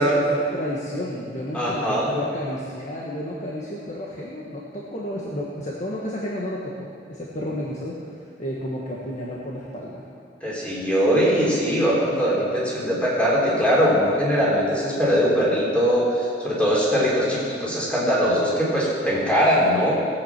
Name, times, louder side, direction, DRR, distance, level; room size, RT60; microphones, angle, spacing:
voice 1, 0.0-10.1, left 1 dB, 40° left, -4 dB, 1.4 m, -31 dB
voice 2, 1.5-2.1 10.4-19.9, equal, 5° left, -6 dB, 3.5 m, -21 dB
18.5 x 8.4 x 5.9 m, 2.5 s
head